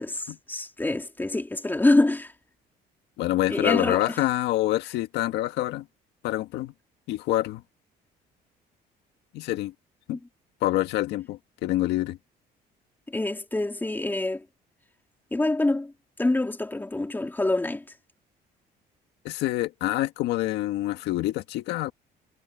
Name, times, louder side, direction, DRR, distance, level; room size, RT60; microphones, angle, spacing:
voice 1, 0.0-2.3 3.5-4.2 13.1-14.4 15.3-15.9 16.2-17.8, left 2 dB, 10° left, 3.0 m, -25 dB
voice 2, 3.2-5.8 6.2-6.7 7.1-7.6 9.3-9.7 10.1-10.2 10.6-12.2 19.2-21.9, left 15 dB, 85° left, 1.8 m, -26 dB
cardioid pair, 110°, 17 cm